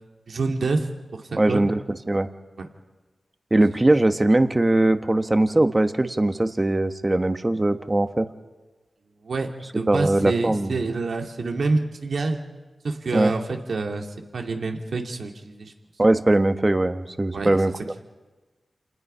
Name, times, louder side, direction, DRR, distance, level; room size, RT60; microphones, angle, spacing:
voice 1, 0.3-0.9 1.1-1.7 2.6-2.7 9.2-12.4 12.8-14.1 14.3-15.7 17.3-17.5, right 3 dB, 75° right, 3 dB, 2.5 m, -27 dB
voice 2, 1.4-2.3 3.5-8.3 9.9-10.8 13.1-13.3 16.0-17.7, right 2 dB, 30° right, 9 dB, 1.3 m, -20 dB
28.0 x 19.5 x 5.7 m, 1.2 s
cardioid pair, 60°, 0 cm